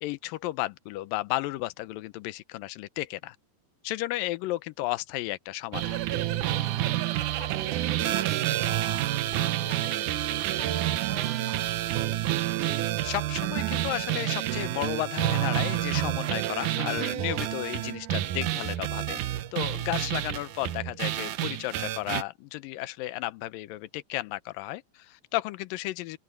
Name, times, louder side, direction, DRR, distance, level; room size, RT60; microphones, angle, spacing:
voice 1, 0.0-3.4 3.8-6.0 13.0-19.2 19.5-26.2, left 17 dB, 75° left, 2.2 m, -33 dB
sound 1, 5.7-22.2, right 14 dB, 75° right, 1.9 m, -29 dB
voice 2, 7.4-12.1 20.3-20.5, left 4 dB, 40° left, 4.8 m, -48 dB
sound 2, 14.1-21.3, right 4 dB, 35° right, 5.5 m, -50 dB
open air
omnidirectional pair, 4.6 m